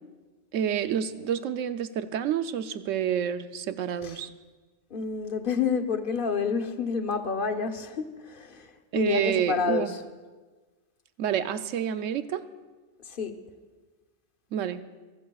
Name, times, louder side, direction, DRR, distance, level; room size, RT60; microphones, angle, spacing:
voice 1, 0.5-4.3 8.9-9.9 11.2-12.4 14.5-14.8, right 9 dB, 75° right, 11 dB, 1.0 m, -28 dB
voice 2, 4.9-8.7 8.9-10.0 13.1-13.3, left 5 dB, 45° left, 6 dB, 0.9 m, -29 dB
27.0 x 13.5 x 2.3 m, 1.3 s
omnidirectional pair, 1.3 m